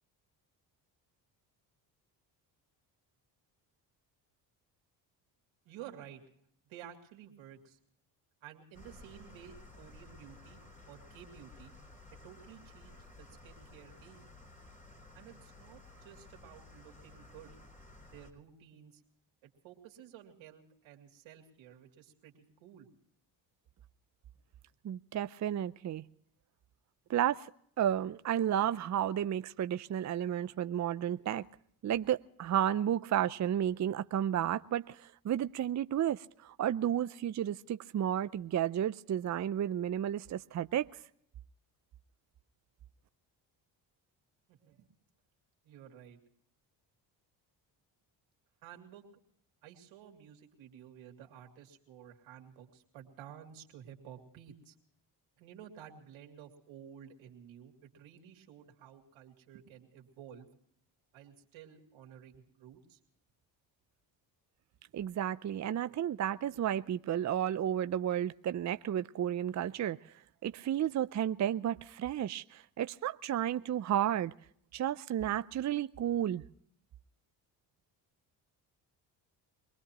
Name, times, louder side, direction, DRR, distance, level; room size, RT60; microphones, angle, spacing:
voice 1, 5.6-6.3 6.7-7.8 8.4-10.6 10.9-11.7 12.2-14.3 15.1-17.5 18.1-19.0 19.4-22.9 44.5-44.9 45.6-46.2 48.6-49.0 49.6-54.8 55.4-60.5 61.1-63.0, right 9 dB, 85° right, 2.8 m, -53 dB
sound 1, 8.7-18.3, left 2 dB, 15° left, 3.8 m, -55 dB
voice 2, 24.8-26.0 27.1-27.5 27.8-31.4 31.8-40.9 64.9-70.0 70.4-74.3 74.7-76.4, right 10 dB, 40° right, 0.5 m, -32 dB
24.5 x 19.5 x 3.0 m
supercardioid pair, 75°, 46 cm